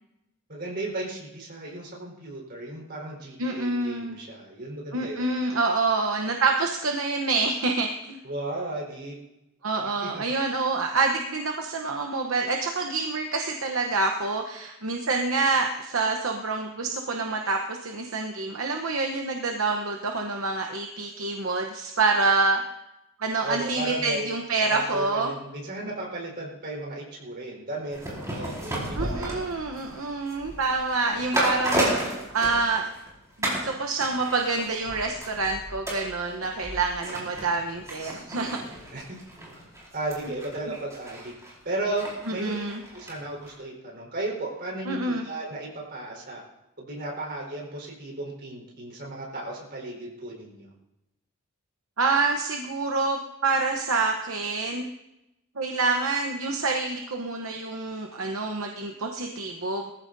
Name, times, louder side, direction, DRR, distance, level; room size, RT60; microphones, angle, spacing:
voice 1, 0.5-5.3 8.2-9.2 10.0-10.2 23.4-24.3 24.7-29.7 38.9-39.2 39.9-41.3 41.6-42.5 42.9-46.4 46.8-50.7, right 2 dB, 45° right, -3 dB, 4.5 m, -35 dB
voice 2, 3.4-4.2 4.9-8.2 9.6-22.6 23.2-25.3 28.9-32.9 33.4-38.6 40.7-40.8 42.3-42.8 44.9-45.3 52.0-54.9 55.6-59.9, right 3 dB, 65° right, 2 dB, 1.0 m, -27 dB
sound 1, 27.9-33.1 33.4-33.7 34.0-43.1 43.4-43.5, right 1 dB, 15° right, 4.7 m, -33 dB
21.0 x 14.5 x 2.7 m, 0.93 s
head